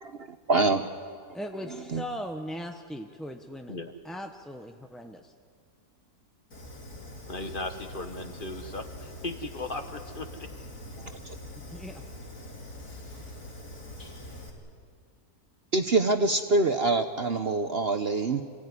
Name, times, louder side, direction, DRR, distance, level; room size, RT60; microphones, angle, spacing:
voice 1, 0.0-0.9 1.9-2.0 11.2-11.3 15.7-18.4, right 3 dB, 45° right, 7 dB, 0.9 m, -25 dB
voice 2, 1.3-5.3 11.7-12.0, equal, ahead, 4 dB, 0.5 m, -39 dB
Fire, 6.5-14.5, left 1 dB, 70° left, 3.8 m, -43 dB
voice 3, 7.3-10.5, left 2 dB, 35° left, 6 dB, 1.5 m, -37 dB
27.5 x 16.5 x 9.7 m, 2.1 s
omnidirectional pair, 1.7 m